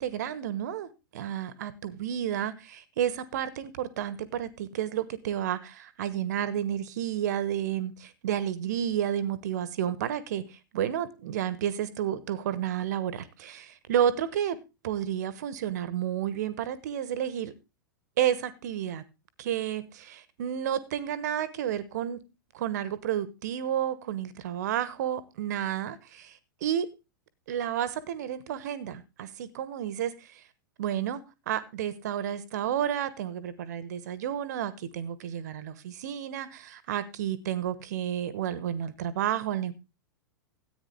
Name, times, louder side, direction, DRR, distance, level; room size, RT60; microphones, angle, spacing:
voice 1, 0.0-14.6 14.8-17.5 18.2-19.0 19.4-22.2 22.5-26.9 27.5-30.4 30.8-39.7, right 10 dB, 55° right, 1.2 m, -31 dB
14.0 x 9.0 x 3.3 m
figure-of-eight pair, 95°, 11 cm